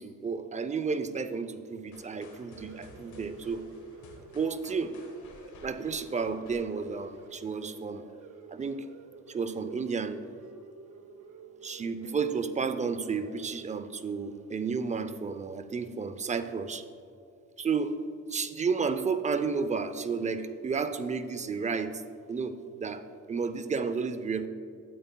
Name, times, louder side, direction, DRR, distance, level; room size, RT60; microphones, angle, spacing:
voice 1, 0.0-3.6 4.3-4.9 5.6-8.1 8.5-8.9 9.3-10.2 11.6-16.8 17.6-18.0 18.3-22.0 22.3-24.5, right 5 dB, 25° right, 10 dB, 0.5 m, -32 dB
sound 1, 1.9-7.8, left 3 dB, 75° left, 1.3 m, -55 dB
sound 2, 2.0-15.7, right 5 dB, 75° right, 0.8 m, -52 dB
12.5 x 8.1 x 2.3 m, 2.5 s
cardioid pair, 90°, 30 cm